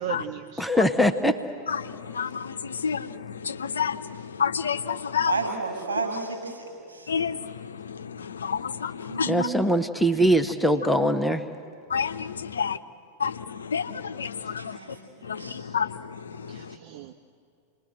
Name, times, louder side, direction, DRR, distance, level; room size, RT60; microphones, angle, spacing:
voice 1, 0.0-0.9 14.5-14.6 16.5-17.1, right 9 dB, 50° right, 6 dB, 0.9 m, -37 dB
voice 2, 0.6-1.4 9.3-11.4, equal, ahead, 5 dB, 0.9 m, -22 dB
voice 3, 1.7-5.3 7.1-9.5 11.9-12.8 13.2-14.8 15.2-16.7, left 7 dB, 70° left, 10 dB, 0.7 m, -30 dB
voice 4, 5.2-7.1 9.1-9.6 14.6-15.6, right 3 dB, 75° right, 2 dB, 7.5 m, -32 dB
29.0 x 21.0 x 7.8 m, 2.5 s
figure-of-eight pair, 90°, 0 cm